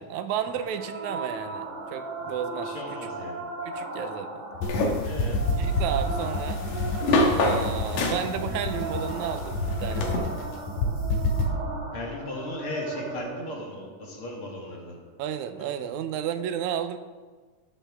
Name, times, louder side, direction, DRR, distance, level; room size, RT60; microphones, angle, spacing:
voice 1, 0.0-2.7 3.7-4.3 5.6-6.6 7.4-10.4 15.2-17.0, right 9 dB, 80° right, 9 dB, 1.9 m, -32 dB
sound 1, 0.6-15.6, right 2 dB, 40° right, 2.6 m, -37 dB
voice 2, 2.6-3.4 5.0-5.4 11.9-15.0 15.6-15.7, left 2 dB, 50° left, -1 dB, 2.1 m, -37 dB
sound 2, 4.5-11.4, left 2 dB, 90° left, 3.3 m, -29 dB
sound 3, 4.6-10.2, left 2 dB, 70° left, 2.7 m, -28 dB
18.0 x 7.6 x 3.5 m, 1.4 s
omnidirectional pair, 3.6 m